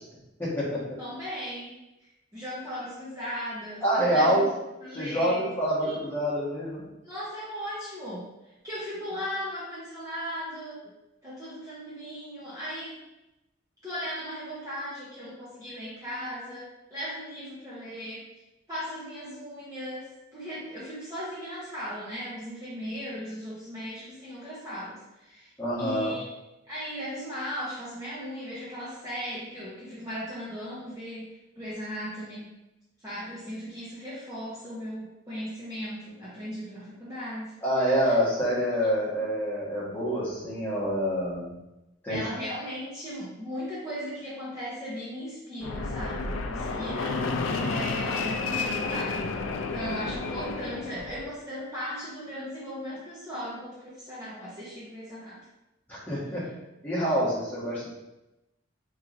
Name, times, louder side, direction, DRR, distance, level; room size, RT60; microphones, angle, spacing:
voice 1, 0.4-1.0 3.8-4.5 4.9-6.8 25.6-26.1 37.6-41.5 42.0-42.3 55.9-56.5 56.8-57.9, equal, 10° left, -10 dB, 1.3 m, -26 dB
voice 2, 1.0-3.8 4.1-4.4 4.8-5.5 5.8-6.0 7.0-8.3 8.6-10.9 11.2-13.1 13.8-18.3 18.7-25.5 25.8-26.3 26.7-32.5 33.0-37.5 38.0-38.1 39.1-39.2 42.1-49.3 49.7-55.4, equal, 15° right, -10 dB, 0.9 m, -37 dB
Fixed-wing aircraft airplane, 45.6-51.2, left 4 dB, 75° left, 0.4 m, -31 dB
4.5 x 3.1 x 2.6 m, 0.95 s
head